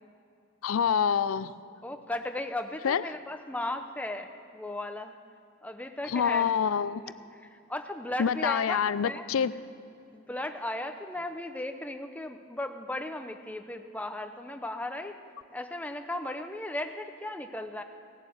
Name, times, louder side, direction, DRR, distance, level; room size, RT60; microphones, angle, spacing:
voice 1, 0.6-1.5 2.8-3.0 6.0-7.0 8.2-9.5, left 7 dB, 85° left, 16 dB, 0.4 m, -26 dB
voice 2, 1.8-5.1 5.6-6.5 7.4-9.2 10.1-15.2 15.5-17.8, left 1 dB, 5° left, 7 dB, 0.6 m, -36 dB
17.5 x 7.3 x 8.0 m, 2.6 s
head